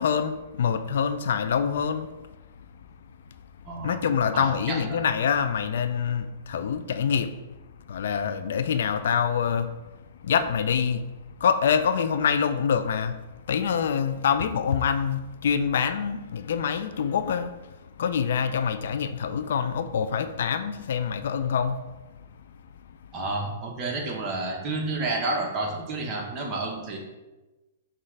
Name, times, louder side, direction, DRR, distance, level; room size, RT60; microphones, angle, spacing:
voice 1, 0.0-2.1 3.8-7.3 7.9-9.7 10.2-11.1 11.4-13.2 13.5-17.5 18.0-21.8, left 7 dB, 70° left, 0.3 m, -25 dB
voice 2, 3.6-5.1 23.1-27.0, right 2 dB, 30° right, 1.0 m, -30 dB
5.5 x 2.4 x 3.2 m
hypercardioid pair, 140°, 0 cm